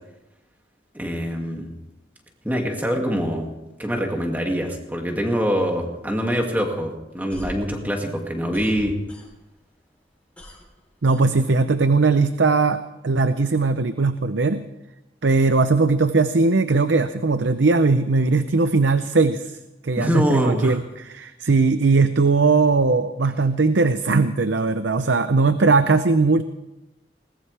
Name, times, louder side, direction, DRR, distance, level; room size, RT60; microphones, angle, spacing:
voice 1, 0.9-1.7 2.4-3.5 3.8-8.9 20.0-20.8, equal, 10° right, 1 dB, 2.3 m, -24 dB
sound 1, 7.1-9.7 10.0-11.9, equal, 5° left, 3.5 m, -41 dB
voice 2, 11.0-14.6 15.2-19.6 19.8-26.4, right 3 dB, 90° right, 10 dB, 0.7 m, -19 dB
21.5 x 19.5 x 3.4 m, 0.97 s
head